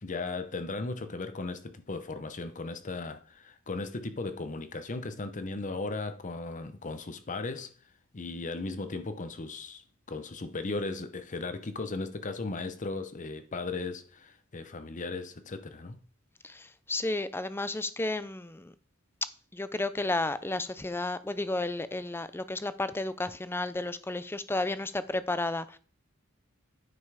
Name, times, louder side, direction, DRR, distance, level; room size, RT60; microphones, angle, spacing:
voice 1, 0.0-7.7 8.1-9.8 10.1-16.0, left 3 dB, 35° left, 0.8 m, -36 dB
voice 2, 16.4-18.7 19.5-25.8, left 2 dB, 10° left, 0.5 m, -32 dB
9.5 x 5.5 x 4.8 m
head